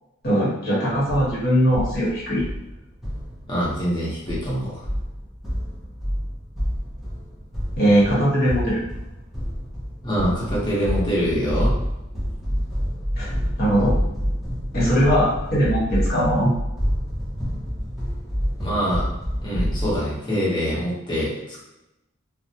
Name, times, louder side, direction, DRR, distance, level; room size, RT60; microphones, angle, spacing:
voice 1, 0.2-2.4 7.8-8.8 13.2-13.3 13.6-13.9 14.7-16.5, equal, 50° left, -7 dB, 1.0 m, -20 dB
sound 1, 0.9-20.0, equal, ahead, 0.5 m, -28 dB
voice 2, 3.5-4.8 10.0-11.7 18.6-19.0 19.4-21.3, equal, 25° left, -7 dB, 0.9 m, -24 dB
2.5 x 2.0 x 2.8 m, 0.90 s
head